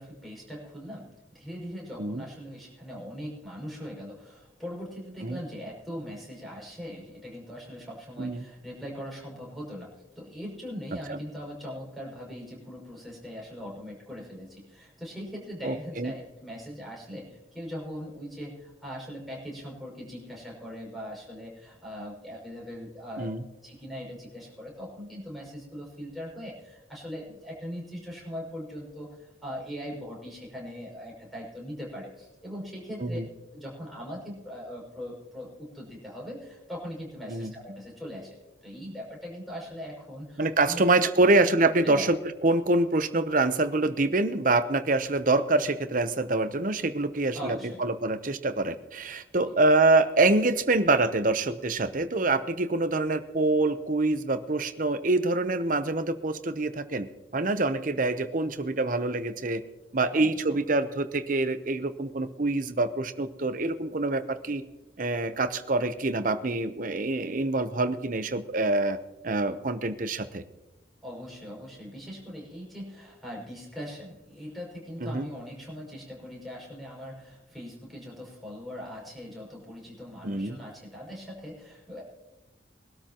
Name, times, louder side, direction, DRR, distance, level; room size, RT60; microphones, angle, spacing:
voice 1, 0.0-23.3 23.6-33.2 33.5-40.8 41.2-41.4 41.8-42.1 47.3-47.8 60.1-60.6 71.0-82.0, equal, ahead, -4 dB, 6.2 m, -40 dB
voice 2, 15.6-16.1 23.2-23.4 33.0-33.3 37.3-37.5 40.4-42.2 42.4-57.1 57.3-59.6 59.9-64.6 65.0-69.0 69.2-70.4 75.0-75.3 80.2-80.6, right 2 dB, 45° right, 10 dB, 0.8 m, -25 dB
22.5 x 13.0 x 3.0 m, 1.0 s
head